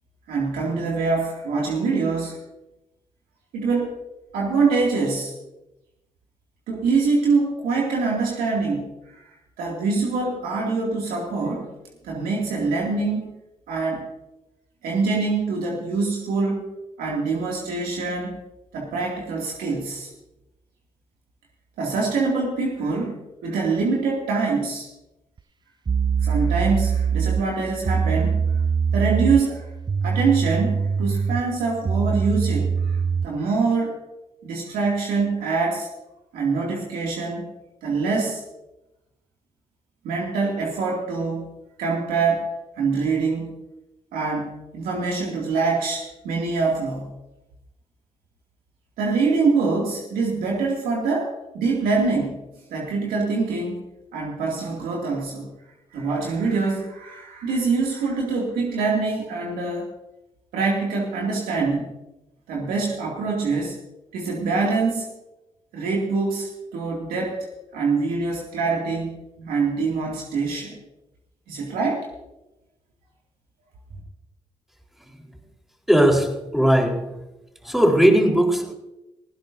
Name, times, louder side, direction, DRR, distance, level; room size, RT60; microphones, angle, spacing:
voice 1, 0.3-2.4 3.5-4.0 4.3-5.3 6.7-11.7 12.0-13.2 13.7-14.1 14.8-16.6 17.0-18.4 18.7-20.1 21.8-24.9 26.2-28.6 28.9-29.7 30.0-34.0 34.4-35.9 36.3-37.5 37.8-38.4 40.0-41.5 41.8-42.5 42.8-43.5 44.1-47.1 49.0-52.4 52.7-53.8 54.1-55.5 55.9-59.9 60.5-61.9 62.5-63.7 64.1-65.1 65.7-67.4 67.7-70.8 71.5-72.1, right 4 dB, 85° right, 2.4 m, -24 dB
sound 1, 25.4-25.5 25.9-33.4, right 6 dB, 30° right, 0.4 m, -23 dB
voice 2, 75.9-77.2 77.6-78.7, equal, ahead, 4.1 m, -18 dB
18.5 x 15.5 x 2.7 m
supercardioid pair, 45°, 15 cm